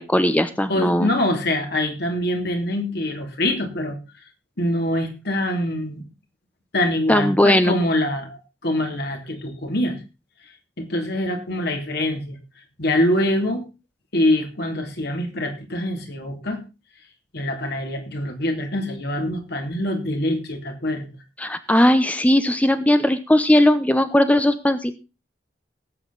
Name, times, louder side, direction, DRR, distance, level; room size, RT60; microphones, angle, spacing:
voice 1, 0.0-1.1 7.1-7.7 21.4-24.9, left 1 dB, 10° left, 10 dB, 0.8 m, -18 dB
voice 2, 0.7-4.0 4.6-6.0 6.7-10.0 10.8-12.4 12.8-13.7 14.1-16.6 17.3-21.1, left 1 dB, 65° left, 4 dB, 3.0 m, -24 dB
18.5 x 8.2 x 4.0 m, 0.29 s
head